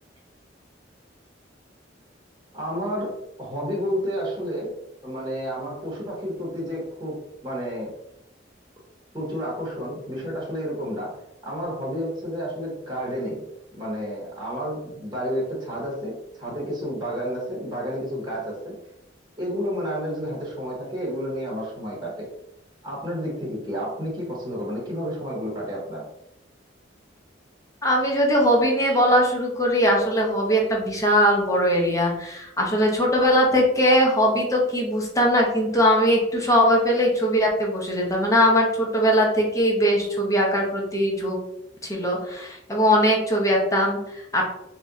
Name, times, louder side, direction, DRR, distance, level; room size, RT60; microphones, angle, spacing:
voice 1, 2.5-3.1 3.4-4.7 5.0-7.2 7.4-7.9 9.1-11.1 11.4-13.4 13.7-18.8 19.4-22.3 22.8-26.0, equal, 20° right, -5 dB, 1.0 m, -30 dB
voice 2, 27.8-41.4 41.8-44.4, equal, 15° left, -1 dB, 0.8 m, -20 dB
3.1 x 2.9 x 3.6 m, 0.83 s
head